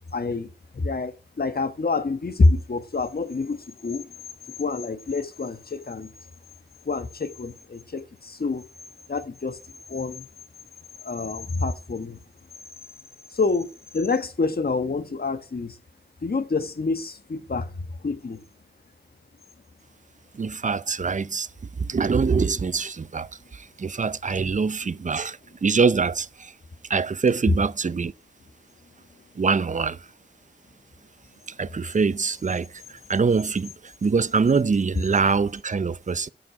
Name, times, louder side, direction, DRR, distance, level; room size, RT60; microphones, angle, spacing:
voice 1, 0.1-0.5 0.7-4.1 4.6-6.1 6.8-8.6 9.1-9.6 9.9-10.3 11.0-12.2 13.3-13.7 13.9-15.8 16.2-18.4 24.8-24.9, left 3 dB, 55° left, 1.3 m, -27 dB
voice 2, 20.4-21.5 21.8-23.3 23.8-26.5 26.9-28.1 29.4-30.0 31.6-32.7 33.1-33.7 34.0-36.3, right 5 dB, 45° right, 0.5 m, -23 dB
12.0 x 6.0 x 7.8 m
wide cardioid pair, 55°, 19 cm